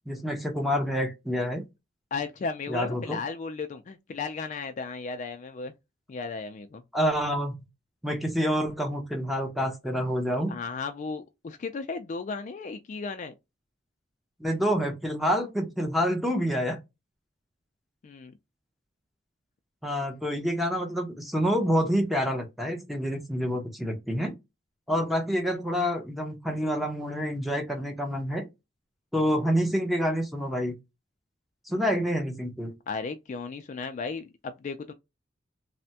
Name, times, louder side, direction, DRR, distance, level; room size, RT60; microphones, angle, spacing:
voice 1, 0.1-1.6 2.7-3.2 6.9-7.5 8.0-10.6 14.4-16.8 19.8-24.3 24.9-28.5 29.1-30.8 31.7-32.7, equal, ahead, 0.6 m, -27 dB
voice 2, 2.1-5.7 6.1-6.8 10.5-13.3 18.0-18.3 32.9-34.9, left 4 dB, 40° left, 0.3 m, -35 dB
3.3 x 2.1 x 2.7 m
head